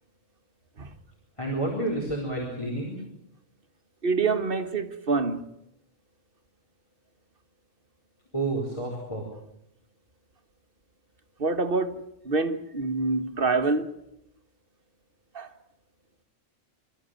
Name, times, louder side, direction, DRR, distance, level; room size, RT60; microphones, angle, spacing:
voice 1, 1.4-3.1 8.3-9.2, right 2 dB, 25° left, 4.2 m, -30 dB
voice 2, 4.0-5.4 11.4-13.9 15.3-15.5, right 3 dB, 50° right, 1.7 m, -26 dB
26.5 x 13.5 x 9.1 m
omnidirectional pair, 1.2 m